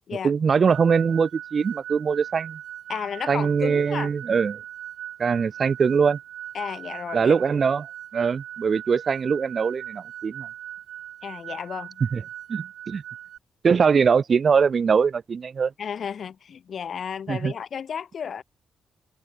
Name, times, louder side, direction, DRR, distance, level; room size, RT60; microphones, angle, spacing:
voice 1, 0.2-2.6 3.3-4.6 5.2-6.2 7.1-7.9 8.1-10.5 12.1-12.2 12.5-13.0 13.6-15.7 17.3-17.5, right 6 dB, 45° right, 0.6 m, -22 dB
sound 1, 0.7-13.4, right 11 dB, 80° right, 4.6 m, -39 dB
voice 2, 2.9-4.1 6.5-7.3 11.2-12.0 15.8-18.4, left 7 dB, 55° left, 1.1 m, -33 dB
cardioid pair, 90°, 0 cm